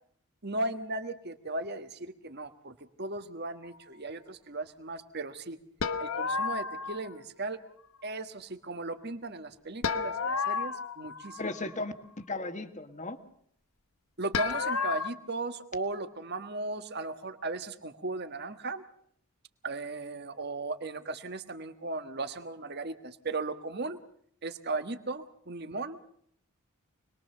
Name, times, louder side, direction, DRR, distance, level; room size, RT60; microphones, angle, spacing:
voice 1, 0.4-5.6 6.0-7.6 8.0-11.4 14.2-18.8 19.6-24.0 24.4-26.0, right 2 dB, 45° right, 9 dB, 1.4 m, -36 dB
sound 1, 5.8-7.1 9.8-11.7 14.3-15.1, left 5 dB, 70° left, 1.0 m, -32 dB
voice 2, 11.4-13.2, left 2 dB, 35° left, 9 dB, 1.4 m, -36 dB
25.5 x 21.0 x 6.7 m, 0.64 s
head